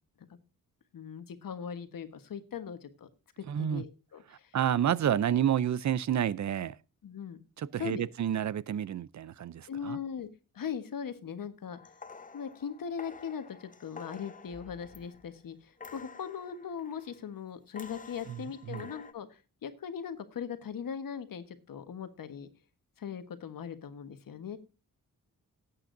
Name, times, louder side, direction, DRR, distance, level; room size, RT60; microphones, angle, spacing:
voice 1, 0.9-3.1 3.4-4.6 7.0-7.4 7.8-8.0 9.7-10.3 10.5-11.9 12.3-22.5 23.0-24.6, left 7 dB, 70° left, 1.3 m, -40 dB
voice 2, 3.5-3.8 4.5-6.8 7.6-10.0 18.3-18.4 18.7-18.9, right 9 dB, 55° right, 0.5 m, -29 dB
sound 1, 11.7-15.4 15.8-17.3 17.7-19.1, left 5 dB, 25° left, 0.7 m, -50 dB
18.0 x 8.6 x 2.6 m
wide cardioid pair, 170°, 34 cm